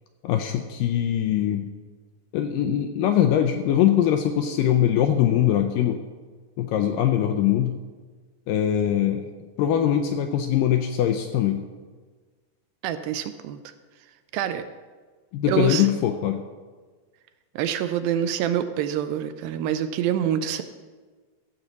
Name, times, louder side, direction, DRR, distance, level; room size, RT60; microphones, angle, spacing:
voice 1, 0.2-1.7 2.3-6.0 6.6-7.8 8.5-9.3 9.6-11.6 15.3-16.4, left 10 dB, 85° left, 6 dB, 2.0 m, -22 dB
voice 2, 12.8-13.6 14.3-14.7 15.5-15.9 17.6-20.6, right 9 dB, 80° right, 10 dB, 2.2 m, -26 dB
15.0 x 7.0 x 4.0 m, 1.4 s
omnidirectional pair, 4.3 m